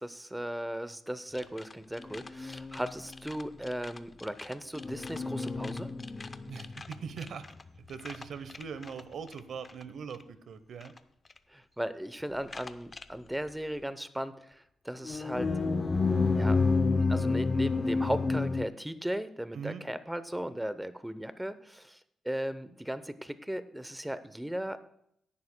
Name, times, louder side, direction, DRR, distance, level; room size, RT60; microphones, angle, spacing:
voice 1, 0.0-5.9 11.5-15.5 16.3-16.6 17.0-24.8, equal, 5° right, 12 dB, 0.7 m, -37 dB
sound 1, 1.4-1.7 2.0-4.0 4.2-7.6 7.9-8.2 8.5-9.0 9.3-9.4 9.7-9.8 10.8-10.9 12.5-13.0 15.0-18.7, left 3 dB, 30° left, 0.6 m, -30 dB
voice 2, 6.5-7.5 7.7-10.9 19.5-19.8, right 6 dB, 70° right, 13 dB, 0.8 m, -41 dB
16.5 x 11.0 x 2.2 m, 0.73 s
cardioid pair, 90°, 0 cm